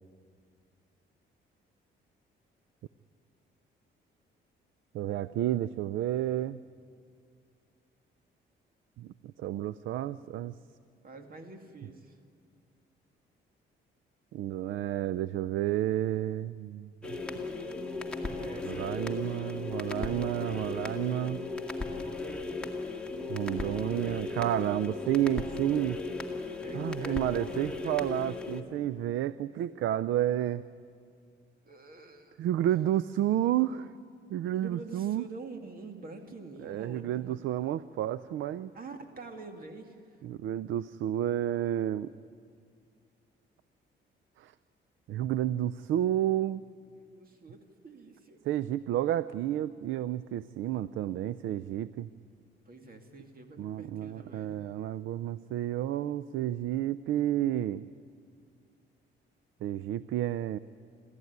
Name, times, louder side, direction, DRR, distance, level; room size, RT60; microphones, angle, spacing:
voice 1, 4.9-6.6 9.0-10.5 14.3-16.9 18.6-21.4 23.3-26.0 26.7-30.6 32.4-33.9 34.3-35.3 36.6-38.7 40.2-42.1 44.4-44.5 45.1-46.6 48.4-52.1 53.6-57.8 59.6-60.6, right 12 dB, 80° right, 16 dB, 0.5 m, -31 dB
voice 2, 11.0-12.2 17.0-20.1 26.6-28.4 31.6-32.4 34.5-37.4 38.7-40.2 47.0-48.4 52.7-54.7, right 2 dB, 45° right, 5 dB, 2.3 m, -47 dB
sound 1, 17.0-28.6, left 3 dB, 5° left, 2.2 m, -36 dB
26.5 x 14.0 x 9.5 m, 2.2 s
cardioid pair, 90°, 20 cm